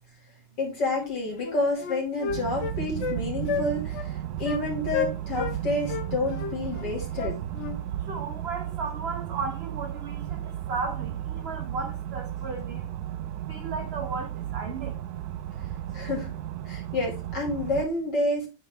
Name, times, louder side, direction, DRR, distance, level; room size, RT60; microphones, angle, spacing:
voice 1, 0.6-7.4 15.9-16.3 16.6-18.5, left 2 dB, 75° left, 3.1 m, -29 dB
Wind instrument woodwind instrument, 1.0-1.1 1.4-3.2 3.5-3.7 3.9-4.1 4.4-4.6 4.9-5.6 5.9-7.8, left 6 dB, 55° left, 0.8 m, -31 dB
sound 1, 2.3-17.9, right 11 dB, 70° right, 1.1 m, -34 dB
voice 2, 8.1-12.9 13.5-15.0, right 4 dB, 45° right, 0.9 m, -35 dB
9.2 x 3.9 x 3.4 m
omnidirectional pair, 1.8 m